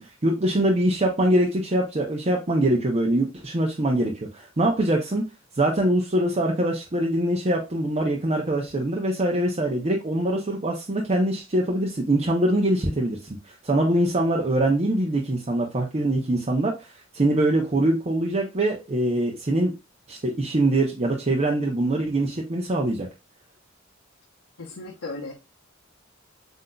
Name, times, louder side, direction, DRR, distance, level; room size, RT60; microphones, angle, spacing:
voice 1, 0.2-5.2 5.6-13.4 13.6-16.9 17.1-19.7 20.1-23.1, right 1 dB, 30° right, -1 dB, 0.7 m, -23 dB
voice 2, 24.6-25.3, left 2 dB, 80° left, 1 dB, 0.9 m, -35 dB
7.6 x 2.7 x 2.3 m, 0.27 s
head